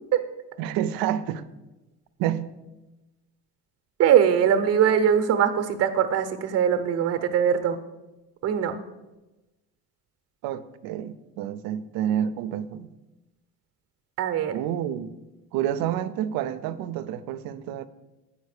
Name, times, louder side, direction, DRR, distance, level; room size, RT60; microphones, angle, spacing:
voice 1, 0.6-1.4 2.2-2.5 10.4-12.9 14.5-15.1 15.5-17.9, right 10 dB, 75° right, 0.7 m, -29 dB
voice 2, 4.0-7.8 8.4-8.8 14.2-14.5, right 8 dB, 45° right, 0.9 m, -21 dB
9.3 x 5.2 x 6.5 m
cardioid pair, 130°, 35 cm